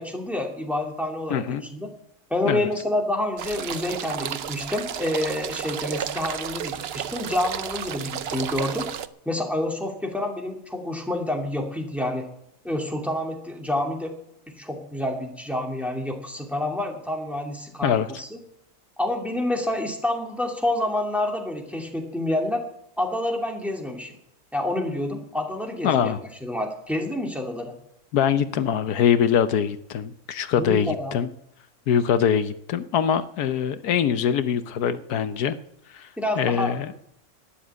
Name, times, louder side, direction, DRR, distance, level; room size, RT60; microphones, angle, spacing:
voice 1, 0.0-1.9 2.3-8.9 9.3-12.3 12.6-14.2 14.5-18.4 19.0-22.6 23.0-24.1 24.5-26.1 26.4-27.7 30.6-31.1 36.2-37.0, left 1 dB, ahead, 1 dB, 2.6 m, -28 dB
voice 2, 1.3-1.6 2.4-2.7 17.8-18.1 25.8-26.2 28.1-31.3 31.9-35.6 35.9-36.1 36.4-36.9, left 8 dB, 85° left, 11 dB, 1.4 m, -23 dB
sound 1, 3.4-9.1, right 9 dB, 55° right, 0.7 m, -32 dB
12.5 x 10.5 x 8.1 m, 0.75 s
omnidirectional pair, 1.6 m